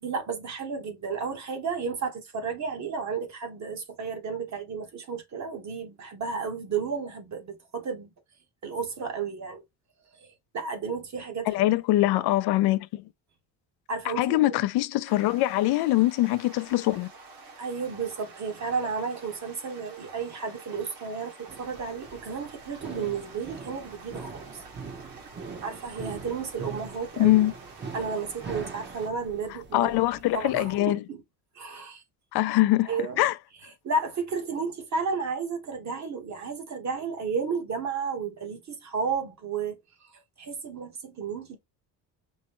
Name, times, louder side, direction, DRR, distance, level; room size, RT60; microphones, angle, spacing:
voice 1, 0.0-8.1 8.6-9.6 10.2-10.3 10.5-11.5 13.9-14.6 17.6-24.6 25.6-27.3 27.9-30.0 30.3-31.2 31.5-32.0 32.9-33.2 33.8-39.8 40.4-41.6, right 5 dB, 45° right, 1.2 m, -32 dB
voice 2, 11.5-13.0 14.2-17.1 27.2-27.5 29.7-31.0 32.3-32.9 33.2-33.3, left 16 dB, 75° left, 0.5 m, -23 dB
sound 1, 15.1-29.1, right 3 dB, 60° right, 1.7 m, -49 dB
sound 2, 21.5-30.8, right 4 dB, 30° right, 0.8 m, -42 dB
5.2 x 2.2 x 2.9 m
cardioid pair, 105°, 39 cm